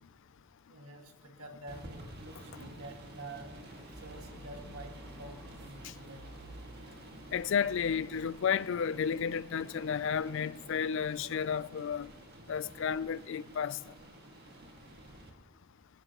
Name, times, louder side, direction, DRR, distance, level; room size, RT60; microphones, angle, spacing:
voice 1, 0.7-3.5 4.0-6.3 11.2-11.4 14.6-14.7, right 2 dB, 75° right, 2.0 m, -48 dB
sound 1, 1.7-15.3, right 1 dB, 45° right, 1.9 m, -50 dB
sound 2, 3.5-11.6, equal, 15° left, 1.8 m, -59 dB
voice 2, 7.3-12.1 12.5-13.8, left 7 dB, 60° left, 0.4 m, -32 dB
20.0 x 15.5 x 2.9 m
head